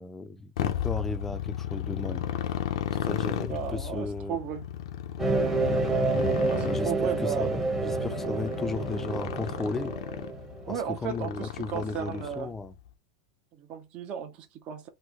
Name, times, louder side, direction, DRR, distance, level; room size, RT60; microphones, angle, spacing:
voice 1, 0.0-2.3 3.0-4.4 6.1-9.9 10.7-12.7, left 3 dB, 10° left, 0.4 m, -35 dB
Motorcycle, 0.6-12.7, left 10 dB, 75° left, 0.5 m, -35 dB
voice 2, 3.5-4.7 6.5-7.5 10.7-12.5 13.5-14.9, right 8 dB, 40° right, 0.6 m, -35 dB
sound 1, 5.2-10.7, right 3 dB, 10° right, 0.8 m, -28 dB
3.1 x 2.1 x 3.5 m
supercardioid pair, 135°, 3 cm